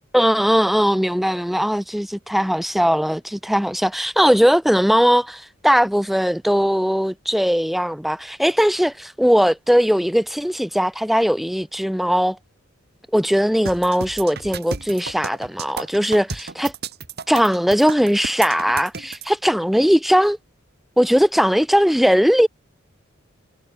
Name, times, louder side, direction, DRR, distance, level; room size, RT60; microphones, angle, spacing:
voice 1, 0.1-12.4 13.1-16.7 17.3-20.4 21.0-22.5, equal, ahead, 0.4 m, -19 dB
sound 1, 13.7-19.3, right 5 dB, 50° right, 2.6 m, -32 dB
head